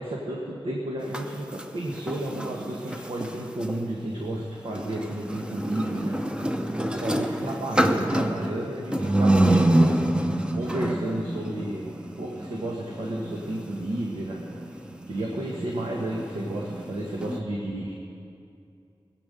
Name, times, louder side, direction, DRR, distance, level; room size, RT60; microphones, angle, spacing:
voice 1, 0.0-6.2 6.5-10.0 10.6-14.6 15.1-17.9, right 1 dB, 85° right, -2 dB, 1.6 m, -32 dB
sound 1, 1.0-3.8 4.7-17.4, right 1 dB, 10° right, 0.8 m, -27 dB
20.0 x 8.5 x 6.9 m, 2.5 s
wide cardioid pair, 95°, 9 cm